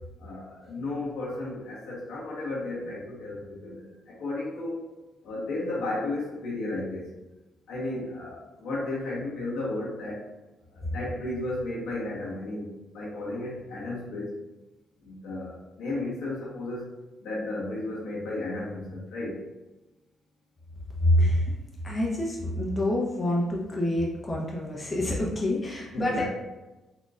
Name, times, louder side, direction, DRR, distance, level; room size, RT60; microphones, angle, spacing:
voice 1, 0.2-4.8 5.2-7.1 7.7-10.2 10.7-14.3 15.0-16.9 17.2-19.4 25.9-26.3, left 2 dB, 75° left, -6 dB, 1.3 m, -34 dB
voice 2, 21.0-21.5 21.8-26.3, left 1 dB, 30° left, -4 dB, 0.9 m, -26 dB
4.1 x 2.8 x 2.5 m, 1.1 s
hypercardioid pair, 50°, 0 cm